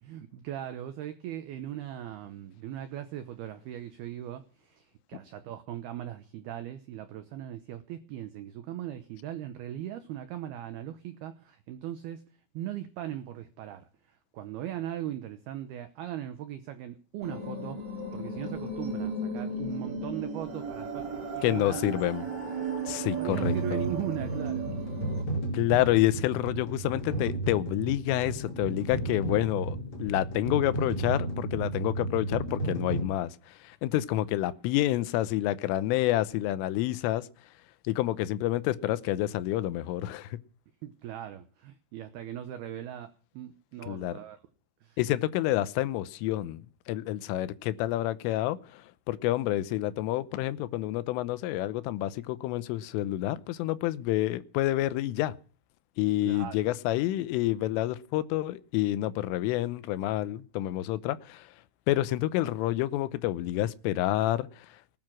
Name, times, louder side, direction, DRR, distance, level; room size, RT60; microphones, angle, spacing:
voice 1, 0.0-12.2 12.5-17.8 18.1-21.8 23.0-24.7 40.8-44.4 44.8-45.0 56.2-56.7, right 12 dB, 85° right, 2.2 m, -39 dB
sound 1, 17.2-25.2, right 3 dB, 25° right, 3.1 m, -35 dB
voice 2, 21.4-22.2 22.9-23.8 25.5-37.3 37.8-40.4 43.9-44.2 45.0-55.3 56.0-61.5 61.9-64.7, left 15 dB, 80° left, 3.3 m, -28 dB
sound 2, 23.3-33.0, right 2 dB, 35° left, 5.1 m, -33 dB
19.5 x 9.6 x 6.0 m
omnidirectional pair, 5.9 m